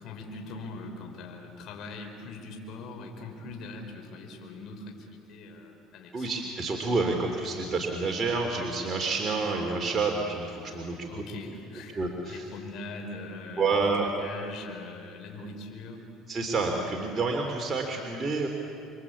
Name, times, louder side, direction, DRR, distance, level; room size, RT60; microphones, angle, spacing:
voice 1, 0.0-6.3 10.7-16.1, left 2 dB, 60° left, 2 dB, 4.7 m, -42 dB
voice 2, 6.1-10.9 12.0-12.5 13.6-14.1 16.3-18.5, right 3 dB, 30° right, 1 dB, 2.9 m, -28 dB
29.0 x 23.5 x 8.5 m, 2.7 s
supercardioid pair, 100°, 0 cm